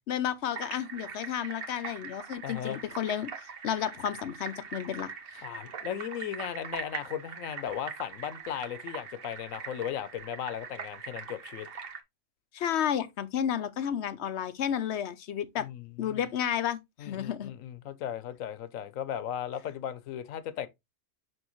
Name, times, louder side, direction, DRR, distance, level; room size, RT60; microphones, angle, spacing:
voice 1, 0.1-5.4 12.5-15.7 16.0-17.5, left 9 dB, 60° left, 0.9 m, -32 dB
sound 1, 0.5-12.0, right 6 dB, 50° right, 1.0 m, -42 dB
voice 2, 2.4-2.8 5.4-11.7 15.6-16.2 17.0-20.7, left 9 dB, 85° left, 1.1 m, -36 dB
6.3 x 5.4 x 3.0 m
omnidirectional pair, 1.3 m